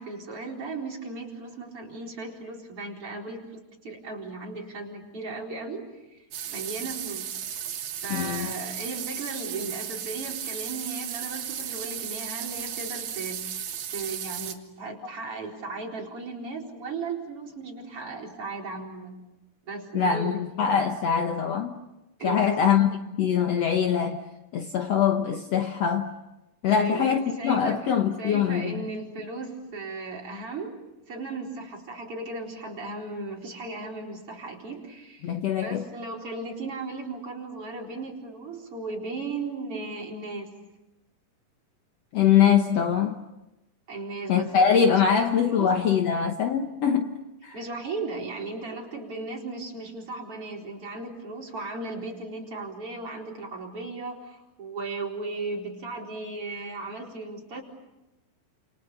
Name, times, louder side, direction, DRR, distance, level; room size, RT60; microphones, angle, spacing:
voice 1, 0.0-5.8 6.1-6.2 6.5-7.3 8.0-13.6 13.9-19.2 19.6-20.4 22.2-22.8 26.7-27.8 28.2-30.8 31.1-40.5 43.9-45.7 47.5-57.6, right 3 dB, 40° right, 5.1 m, -36 dB
sound 1, 6.3-14.6, right 9 dB, 80° right, 3.4 m, -35 dB
voice 2, 8.1-8.5 19.9-21.8 22.2-24.2 24.5-26.1 26.6-28.8 35.2-35.8 42.1-43.2 44.3-47.2 47.4-47.6, left 8 dB, 60° left, 2.0 m, -23 dB
30.0 x 28.0 x 7.1 m
omnidirectional pair, 3.9 m